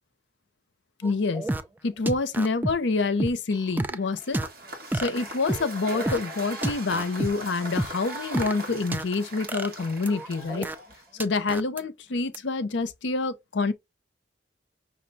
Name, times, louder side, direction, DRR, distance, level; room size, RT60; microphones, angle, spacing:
voice 1, 1.0-1.4 1.8-4.4 4.9-10.7 11.2-13.7, left 3 dB, 70° left, 0.6 m, -27 dB
sound 1, 1.0-1.6 2.1-2.7 3.2-4.0 4.3-4.5 4.9-5.7 5.9-6.2 6.6-7.3 7.8-9.0 9.5-10.7 11.2-11.8 12.3-12.4, right 1 dB, 10° right, 0.3 m, -29 dB
Cheering / Applause / Crowd, 4.1-11.2, right 1 dB, 50° right, 1.7 m, -40 dB
5.8 x 2.2 x 3.8 m
head